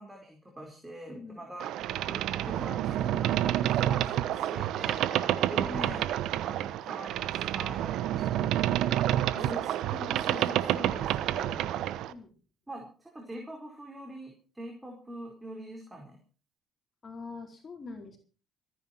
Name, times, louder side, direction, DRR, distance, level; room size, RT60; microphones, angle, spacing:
voice 1, 0.0-1.7 2.1-6.0 6.4-8.5 9.3-11.7 12.7-16.2, right 1 dB, 15° right, 1 dB, 4.8 m, -44 dB
voice 2, 1.1-1.4 5.6-6.0 9.3-9.7 12.1-12.3 17.0-18.2, left 3 dB, 40° left, 3 dB, 4.2 m, -43 dB
Boat Water vehicle, 1.6-12.1, right 12 dB, 70° right, 1.0 m, -29 dB
24.5 x 10.0 x 4.6 m, 0.37 s
supercardioid pair, 70°, 0 cm